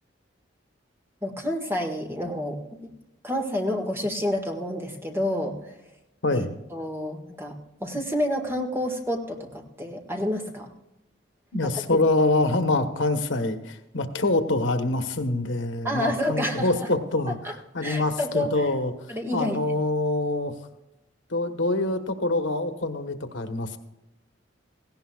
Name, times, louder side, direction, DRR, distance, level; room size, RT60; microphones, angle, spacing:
voice 1, 1.2-2.9 3.2-5.7 6.3-6.4 6.7-10.7 11.6-12.0 15.8-16.9 17.4-17.5 17.8-18.7 19.1-19.7, left 1 dB, 15° right, 2 dB, 1.7 m, -29 dB
voice 2, 6.2-6.5 11.5-17.4 17.7-20.5 21.3-23.8, left 2 dB, 85° left, 7 dB, 1.2 m, -25 dB
18.0 x 16.0 x 2.4 m, 0.93 s
head